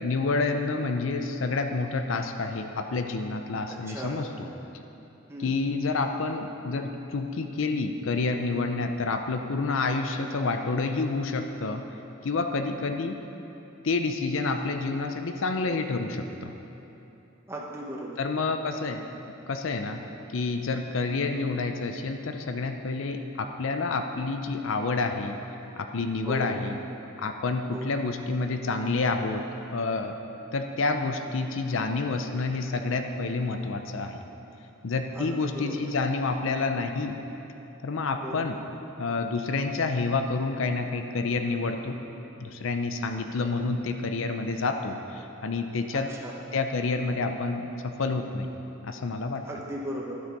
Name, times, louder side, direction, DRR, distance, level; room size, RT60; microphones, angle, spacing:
voice 1, 0.0-4.3 5.4-11.8 12.2-13.2 13.8-16.6 18.2-19.0 19.5-20.0 20.3-25.4 25.8-26.8 27.2-29.4 29.7-30.2 30.5-34.2 34.8-37.2 37.8-38.6 39.0-42.0 42.4-46.1 46.5-48.5 48.8-49.4, left 3 dB, 70° left, 6 dB, 0.6 m, -28 dB
voice 2, 3.7-4.2 5.3-5.5 17.5-18.2 26.2-26.5 27.7-27.9 35.1-35.8 38.2-38.4 45.9-46.4 49.5-50.2, equal, 10° right, -3 dB, 1.0 m, -37 dB
10.5 x 7.9 x 5.3 m, 2.9 s
head